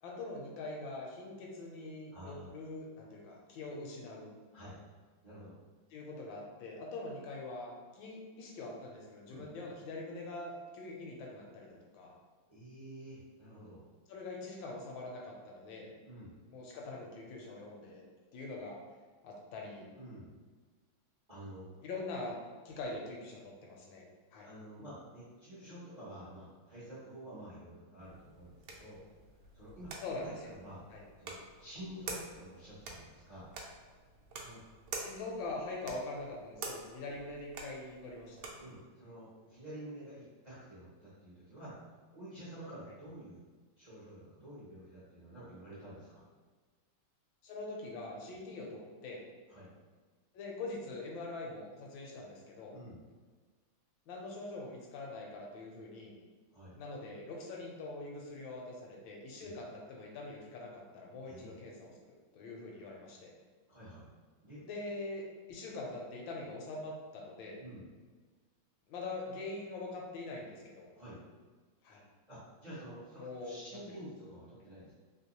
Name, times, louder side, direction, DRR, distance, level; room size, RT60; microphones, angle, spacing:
voice 1, 0.0-4.3 5.9-12.1 14.1-15.9 16.5-18.1 18.3-18.8 19.2-19.9 21.8-22.4 22.6-24.1 24.3-24.5 30.0-30.4 30.9-31.0 35.0-38.5 42.9-43.0 47.4-49.2 50.3-52.7 54.1-56.2 56.8-61.9 62.3-63.3 64.6-67.6 68.9-70.9 71.8-72.0 73.2-73.8, left 2 dB, 75° left, -1 dB, 1.4 m, -43 dB
voice 2, 2.1-2.5 4.5-4.7 5.2-5.6 9.3-9.4 12.5-13.8 16.0-16.3 20.0-20.3 21.3-21.7 24.4-29.0 29.5-29.9 30.2-30.8 31.2-33.5 34.4-34.6 38.6-41.8 42.1-43.5 43.7-46.2 48.2-48.3 49.5-49.7 52.7-53.0 56.5-56.8 59.4-59.5 61.3-61.6 63.7-64.1 64.4-64.6 67.6-67.9 71.0-71.2 72.3-74.9, right 1 dB, 50° right, -10 dB, 0.5 m, -49 dB
sound 1, 28.0-38.7, right 3 dB, 70° right, 1.1 m, -48 dB
3.4 x 2.9 x 2.9 m, 1.4 s
omnidirectional pair, 2.2 m